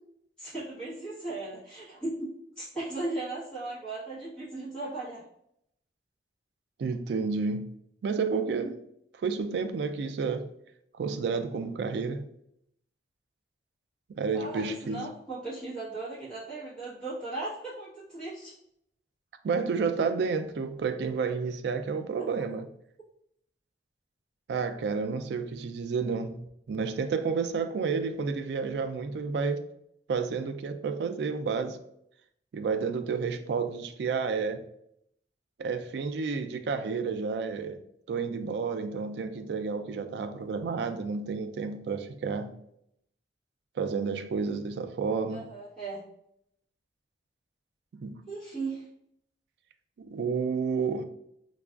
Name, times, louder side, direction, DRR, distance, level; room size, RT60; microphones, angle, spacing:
voice 1, 0.4-2.3 2.6-5.2 14.2-18.5 45.3-46.0 48.3-48.9, right 2 dB, 5° left, 1.1 m, -37 dB
voice 2, 6.8-7.7 8.0-8.8 9.1-10.5 10.9-12.3 14.1-15.1 19.4-22.7 24.5-29.7 30.1-31.8 32.5-34.6 35.6-37.8 38.1-42.5 43.8-45.5 47.9-48.2 50.0-51.0, right 5 dB, 75° right, 0.3 m, -30 dB
5.0 x 2.3 x 2.3 m
head